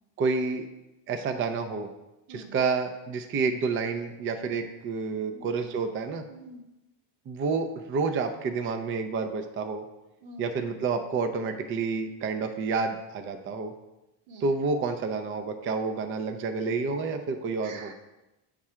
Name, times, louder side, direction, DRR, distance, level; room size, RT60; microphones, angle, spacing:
voice 1, 0.2-0.7 1.1-1.9 2.3-6.2 7.3-9.8 10.4-13.7 14.4-17.9, right 4 dB, 30° right, 6 dB, 0.4 m, -29 dB
voice 2, 6.3-6.6 10.2-10.5 14.3-14.5 17.6-17.9, right 2 dB, 80° right, 4 dB, 1.2 m, -45 dB
8.4 x 3.7 x 4.3 m, 0.97 s
cardioid pair, 140°, 46 cm